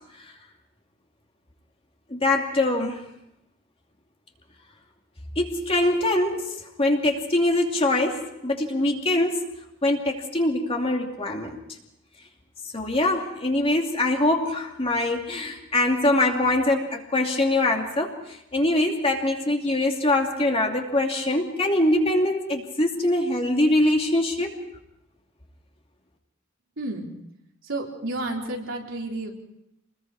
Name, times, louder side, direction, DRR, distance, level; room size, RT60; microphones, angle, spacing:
voice 1, 2.1-3.0 5.4-9.5 9.8-11.6 12.7-24.6, left 1 dB, 30° left, 2 dB, 2.7 m, -23 dB
voice 2, 26.8-27.1 27.6-29.3, right 2 dB, 75° right, 0 dB, 3.7 m, -31 dB
28.0 x 21.0 x 4.9 m, 0.83 s
head